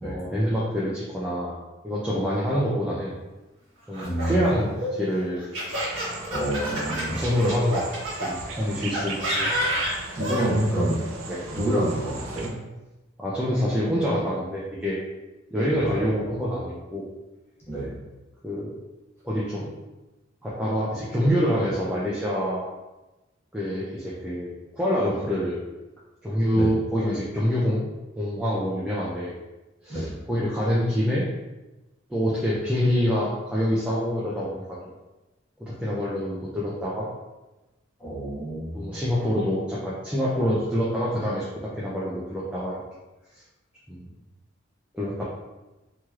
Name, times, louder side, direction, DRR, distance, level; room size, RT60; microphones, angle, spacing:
voice 1, 0.0-1.5 1.8-3.1 3.9-5.4 6.6-7.9 8.2-9.5 10.4-10.9 11.3-11.4 13.2-15.0 15.5-17.0 18.4-18.7 19.2-19.7 20.4-22.7 23.5-25.6 26.2-27.9 28.2-29.3 29.8-31.3 32.1-34.8 35.6-37.1 38.7-42.8 43.9-44.1 44.9-45.2, equal, 5° right, -8 dB, 0.4 m, -26 dB
Laughter, 3.9-8.3 8.9-10.5, equal, 70° right, 1.2 m, -29 dB
voice 2, 4.0-4.5 6.3-7.2 10.1-11.0 11.5-12.5 15.7-16.0 17.7-17.9 26.5-26.7 29.9-30.2 38.0-38.9, right 1 dB, 15° left, -11 dB, 1.3 m, -28 dB
sound 1, 5.7-12.5, right 3 dB, 85° right, 0.4 m, -38 dB
3.1 x 2.9 x 2.3 m, 1.1 s
head